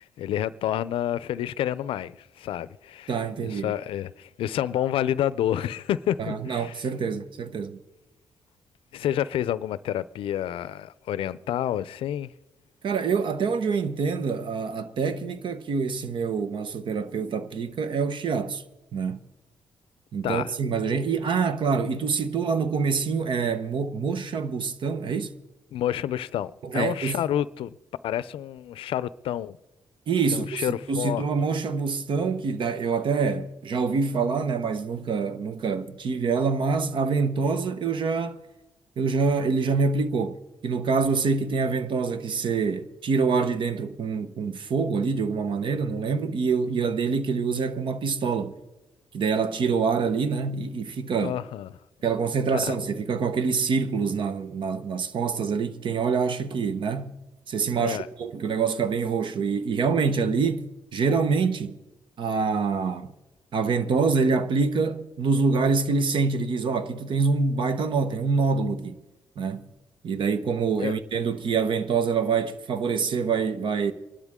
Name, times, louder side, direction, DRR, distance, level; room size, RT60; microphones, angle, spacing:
voice 1, 0.0-3.1 3.4-6.8 8.9-12.3 20.2-20.5 25.7-27.7 28.0-29.6 30.3-31.2 51.2-51.7 52.5-52.7 57.8-58.1 70.8-70.9, left 11 dB, 85° left, 0.5 m, -29 dB
voice 2, 3.1-3.7 6.2-7.8 12.8-18.6 18.9-19.2 20.1-25.3 26.6-27.2 30.1-38.4 39.0-48.6 49.1-51.4 52.0-57.2 57.5-61.8 62.2-63.1 63.5-69.0 69.4-69.7 70.0-73.9, right 5 dB, 65° right, 1.1 m, -26 dB
23.5 x 12.0 x 3.7 m
cardioid pair, 75°, 9 cm